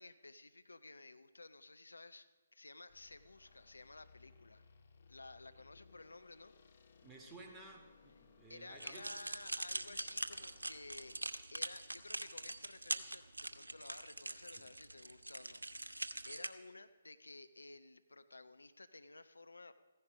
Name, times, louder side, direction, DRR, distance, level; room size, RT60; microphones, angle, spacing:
voice 1, 0.0-4.6 5.1-6.5 8.5-11.2 11.5-19.7, left 2 dB, 80° left, 11 dB, 0.8 m, -54 dB
sound 1, 2.9-11.2, left 5 dB, 50° left, 1.9 m, -65 dB
voice 2, 7.0-9.1 14.5-14.7, right 2 dB, 10° right, 0 dB, 2.5 m, -55 dB
sound 2, 8.8-16.5, right 2 dB, 85° right, 1.0 m, -43 dB
15.5 x 15.5 x 5.0 m, 1.4 s
figure-of-eight pair, 140°, 0 cm